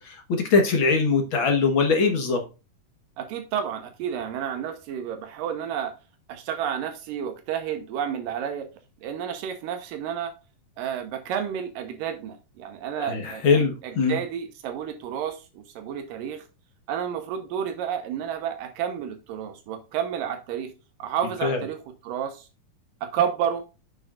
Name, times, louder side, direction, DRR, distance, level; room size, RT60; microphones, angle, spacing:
voice 1, 0.0-2.4 13.0-14.2 21.4-21.6, left 4 dB, 55° left, 4 dB, 1.5 m, -22 dB
voice 2, 3.2-5.9 6.3-8.7 9.0-10.3 10.8-16.4 16.9-20.7 21.0-22.5 23.0-23.6, right 8 dB, 85° right, 6 dB, 2.6 m, -31 dB
8.9 x 6.3 x 2.5 m, 0.29 s
omnidirectional pair, 3.9 m